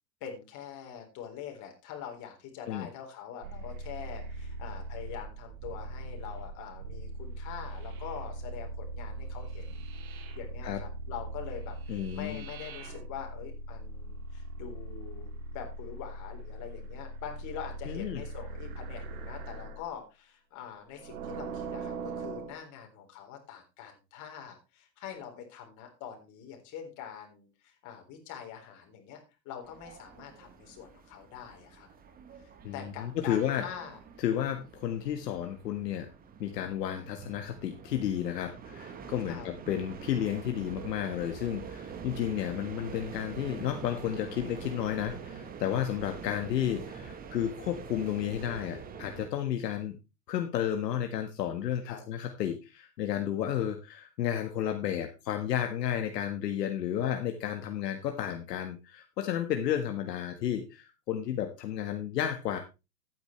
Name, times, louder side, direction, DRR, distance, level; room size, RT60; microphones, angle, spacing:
voice 1, 0.2-31.9 32.4-34.0 39.3-39.5 51.8-52.0, left 8 dB, 35° left, 3 dB, 3.9 m, -44 dB
sound 1, 3.4-19.9 20.9-22.6, right 2 dB, 55° right, 2.5 m, -40 dB
voice 2, 11.9-12.4 17.9-18.2 32.6-33.7 34.2-36.1 36.4-50.0 50.3-62.6, left 10 dB, 70° left, 5 dB, 1.7 m, -32 dB
sound 2, 29.6-49.3, right 6 dB, 15° right, 1.2 m, -45 dB
13.5 x 9.5 x 3.2 m, 0.27 s
hypercardioid pair, 130°, 50 cm